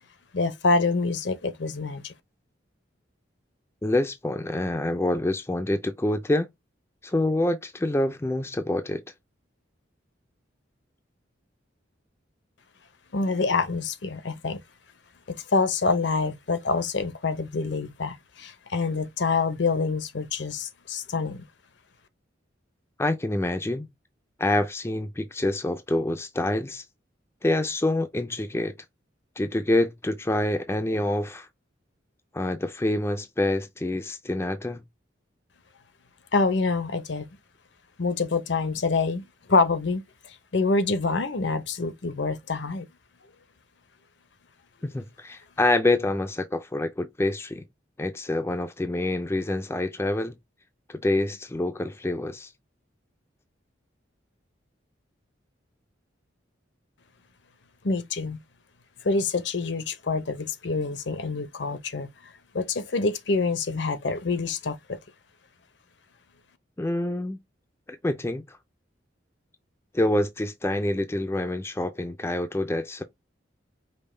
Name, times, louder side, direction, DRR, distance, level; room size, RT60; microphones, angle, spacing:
voice 1, 0.3-2.1 13.1-14.6 15.3-21.4 36.3-37.3 38.0-40.0 40.5-42.9 57.8-58.4 59.0-62.1 62.5-65.0, left 3 dB, 65° left, 0.7 m, -26 dB
voice 2, 3.8-6.5 7.0-9.0 23.0-23.9 24.4-26.8 27.4-28.8 29.4-31.5 32.3-34.8 44.8-47.6 48.0-50.4 50.9-52.5 66.8-67.4 67.9-68.6 69.9-73.0, left 1 dB, 15° left, 0.4 m, -26 dB
5.3 x 2.2 x 3.2 m
head